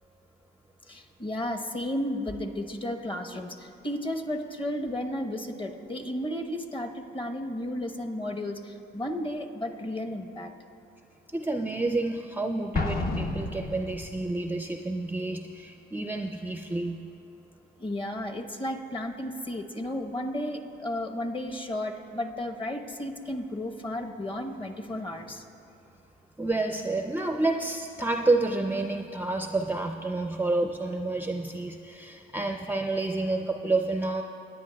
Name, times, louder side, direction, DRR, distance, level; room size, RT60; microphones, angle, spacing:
voice 1, 0.9-10.5 17.8-25.4, left 1 dB, 25° left, 4 dB, 1.0 m, -33 dB
voice 2, 11.3-17.1 26.4-34.2, right 2 dB, 10° right, 4 dB, 0.4 m, -29 dB
Explosion, 12.7-14.3, left 2 dB, 50° left, 0.9 m, -31 dB
22.5 x 10.0 x 2.3 m, 2.6 s
cardioid pair, 90°, 20 cm